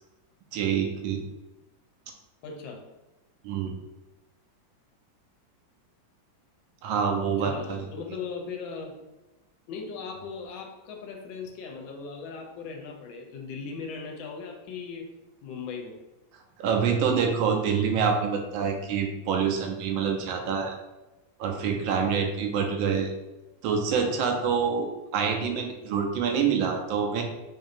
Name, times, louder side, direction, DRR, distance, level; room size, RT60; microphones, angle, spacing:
voice 1, 0.5-1.2 3.4-3.7 6.8-7.9 16.6-20.8 21.4-23.1 23.6-27.2, right 6 dB, 85° right, 3 dB, 1.4 m, -26 dB
voice 2, 2.4-2.8 7.2-9.0 9.7-15.1 15.4-16.0 25.3-25.5, left 5 dB, 90° left, 2 dB, 1.4 m, -38 dB
4.5 x 2.6 x 2.6 m, 1.0 s
omnidirectional pair, 2.1 m